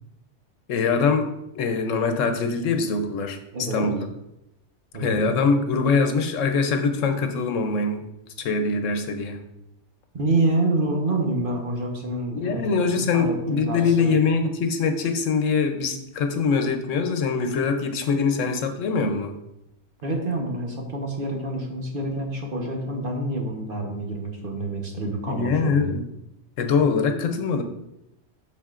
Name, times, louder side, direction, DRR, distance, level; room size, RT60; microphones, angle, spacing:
voice 1, 0.7-1.3 1.5-3.4 3.7-4.0 5.0-8.0 8.4-9.4 12.3-19.3 25.3-26.0 26.6-27.6, left 4 dB, 85° left, 6 dB, 1.1 m, -23 dB
voice 2, 3.5-3.9 4.9-5.2 10.1-14.2 20.0-26.0, right 2 dB, 50° right, 1 dB, 1.2 m, -27 dB
12.0 x 4.2 x 2.5 m, 0.87 s
omnidirectional pair, 1.3 m